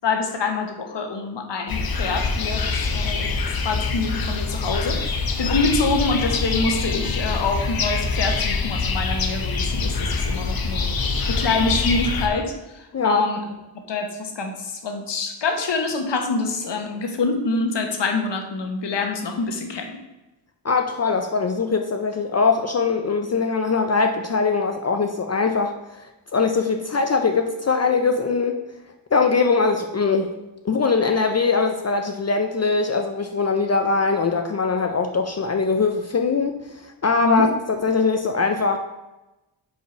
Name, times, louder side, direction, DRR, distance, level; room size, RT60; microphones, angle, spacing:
voice 1, 0.0-10.9 11.3-13.4 13.7-20.0 37.2-37.5, left 3 dB, 75° left, 4 dB, 1.2 m, -26 dB
sound 1, 1.7-12.3, left 4 dB, 55° left, 0.8 m, -25 dB
voice 2, 20.6-26.1 26.3-28.6 29.1-30.3 30.6-38.8, left 4 dB, 40° left, 5 dB, 0.5 m, -21 dB
5.3 x 4.9 x 6.1 m, 1.0 s
wide cardioid pair, 175°, 43 cm